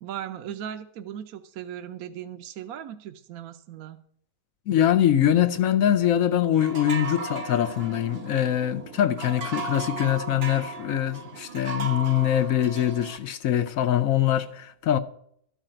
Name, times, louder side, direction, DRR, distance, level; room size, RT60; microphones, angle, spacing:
voice 1, 0.0-4.0, right 10 dB, 70° right, 1.1 m, -38 dB
voice 2, 4.7-15.0, left 11 dB, 65° left, 1.0 m, -23 dB
sound 1, 6.6-13.2, right 3 dB, 50° right, 0.9 m, -36 dB
13.0 x 4.9 x 8.8 m
omnidirectional pair, 1.7 m